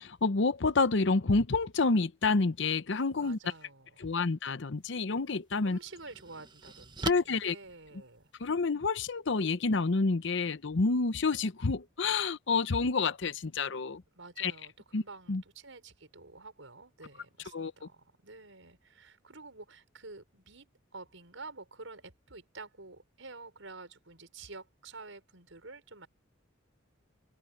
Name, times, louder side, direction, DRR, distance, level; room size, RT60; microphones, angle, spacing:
voice 1, 0.0-3.4 4.0-5.8 7.0-7.5 8.4-14.0 14.4-14.5 14.9-15.0 15.3-15.4 17.5-17.7, left 4 dB, 65° left, 0.8 m, -28 dB
voice 2, 3.2-4.3 5.6-8.3 14.2-26.1, right 3 dB, 75° right, 5.8 m, -49 dB
sound 1, 4.8-4.9 5.5-8.5, right 3 dB, 20° right, 0.9 m, -41 dB
open air
head